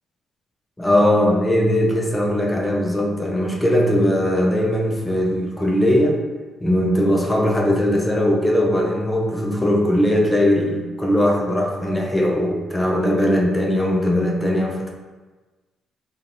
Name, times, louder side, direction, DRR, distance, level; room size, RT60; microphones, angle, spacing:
voice 1, 0.8-6.2 6.6-14.9, left 1 dB, 15° left, 0 dB, 0.6 m, -19 dB
3.9 x 3.1 x 2.8 m, 1.3 s
cardioid pair, 90°, 0 cm